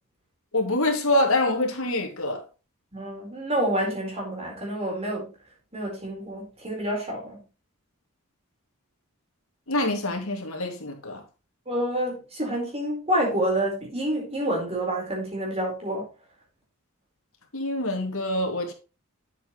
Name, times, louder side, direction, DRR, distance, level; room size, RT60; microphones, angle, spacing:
voice 1, 0.5-2.4 9.7-11.2 17.5-18.7, left 1 dB, 75° left, 2.3 m, -25 dB
voice 2, 2.9-5.3 5.7-7.4 11.7-16.1, right 1 dB, 30° right, 4.2 m, -28 dB
9.1 x 7.7 x 3.0 m
head